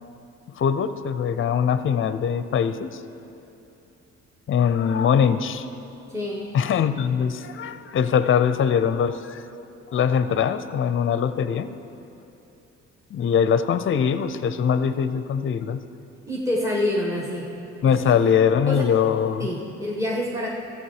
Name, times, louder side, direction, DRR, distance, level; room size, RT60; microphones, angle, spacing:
voice 1, 0.5-3.0 4.5-5.7 6.5-9.4 9.9-11.7 13.1-15.8 17.8-19.5, left 7 dB, 45° left, 12 dB, 0.5 m, -22 dB
voice 2, 6.1-6.5 16.3-17.5 17.8-18.0 18.7-18.8 19.4-20.5, left 1 dB, 10° right, -3 dB, 1.2 m, -27 dB
13.0 x 8.0 x 4.9 m, 2.8 s
cardioid pair, 90°, 30 cm